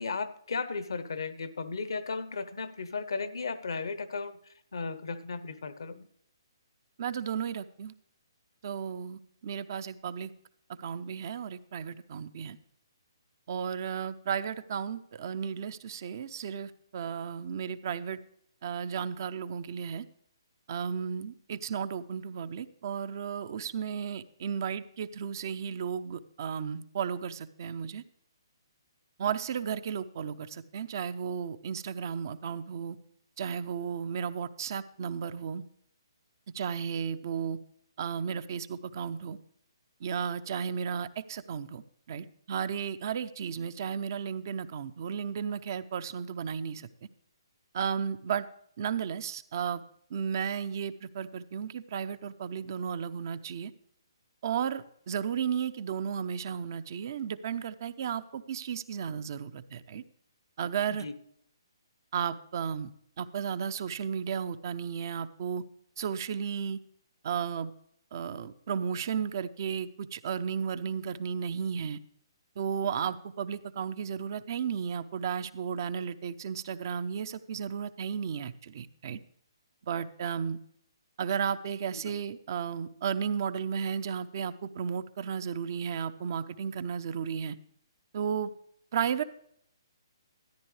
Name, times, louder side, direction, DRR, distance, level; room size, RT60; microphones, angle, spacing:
voice 1, 0.0-4.4 4.7-6.1 60.9-61.1 81.9-82.0, left 4 dB, 65° left, 0.9 m, -35 dB
voice 2, 7.0-7.9 8.6-10.3 10.8-12.6 13.5-18.2 18.6-20.1 20.7-28.0 29.2-33.0 33.4-35.6 36.5-37.6 38.0-39.4 40.0-41.8 42.1-46.9 47.7-48.5 48.8-49.8 50.1-53.7 54.4-60.0 60.6-61.1 62.1-62.9 63.2-65.6 66.0-66.8 67.2-67.7 68.1-72.0 72.6-79.2 79.8-80.6 81.2-87.6 88.1-88.5 88.9-89.2, right 7 dB, 45° right, 0.6 m, -34 dB
13.5 x 10.5 x 3.2 m
figure-of-eight pair, 135°, 2 cm